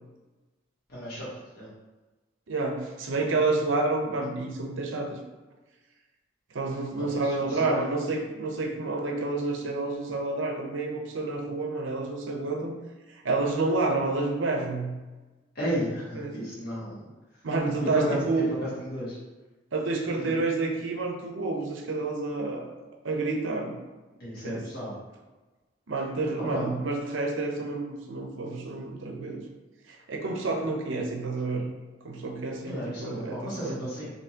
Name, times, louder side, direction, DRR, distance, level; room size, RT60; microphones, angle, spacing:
voice 1, 0.9-1.3 1.5-1.7 7.1-7.8 15.5-17.1 17.9-19.2 20.2-20.3 24.2-25.0 26.5-26.6 32.7-34.1, equal, 50° left, -8 dB, 1.2 m, -33 dB
voice 2, 2.5-5.2 6.5-12.7 13.1-14.9 16.2-16.4 17.4-18.5 19.7-22.7 23.0-23.8 24.4-24.6 25.9-29.4 29.9-31.6 32.0-33.8, right 3 dB, 65° right, 2 dB, 0.6 m, -29 dB
4.4 x 2.8 x 2.8 m, 1.2 s
head